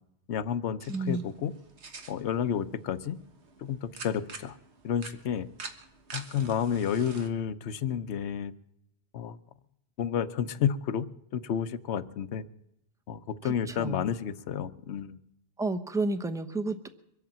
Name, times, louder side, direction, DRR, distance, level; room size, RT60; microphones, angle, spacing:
voice 1, 0.3-1.5 2.1-3.2 3.6-4.6 4.8-5.5 6.1-8.5 9.1-9.4 10.0-11.1 11.3-12.4 13.1-15.2, left 8 dB, 80° left, 13 dB, 1.0 m, -31 dB
sound 1, 0.8-7.3, right 4 dB, 85° right, 1.7 m, -47 dB
voice 2, 0.9-1.2 13.4-14.0 15.6-16.9, right 2 dB, 5° right, 8 dB, 0.8 m, -31 dB
23.5 x 8.4 x 7.4 m, 0.81 s
omnidirectional pair, 1.1 m